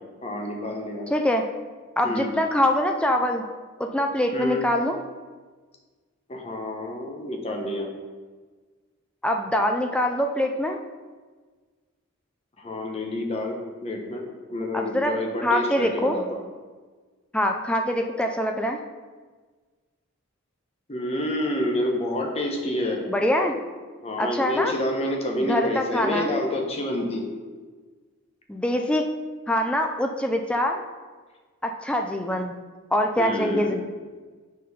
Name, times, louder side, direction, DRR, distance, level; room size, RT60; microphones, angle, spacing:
voice 1, 0.2-1.1 2.0-2.3 4.3-4.6 6.3-7.9 12.6-16.4 20.9-23.1 24.0-27.3 33.2-33.7, left 1 dB, 30° left, 1 dB, 0.9 m, -28 dB
voice 2, 1.1-1.4 2.0-3.4 3.8-5.0 9.2-10.8 14.7-15.1 15.4-16.2 17.3-18.8 23.1-23.5 24.2-24.7 25.5-26.3 28.5-29.1 29.5-30.8 31.6-32.6 32.9-33.8, left 1 dB, 5° left, 3 dB, 0.3 m, -24 dB
7.3 x 4.2 x 5.4 m, 1.4 s
head